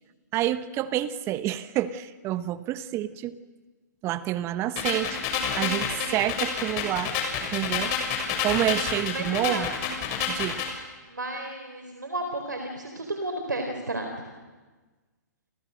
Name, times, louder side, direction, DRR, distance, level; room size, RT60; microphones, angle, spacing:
voice 1, 0.3-3.3 4.0-5.2 5.6-7.1 7.5-7.9 8.4-9.7 10.3-10.7, right 13 dB, 25° right, 13 dB, 1.3 m, -28 dB
sound 1, 4.8-10.7, left 6 dB, 35° left, 7.0 m, -29 dB
voice 2, 9.1-9.7 11.0-14.3, right 1 dB, 90° right, 5 dB, 4.3 m, -33 dB
29.0 x 29.0 x 6.6 m, 1.3 s
figure-of-eight pair, 125°, 10 cm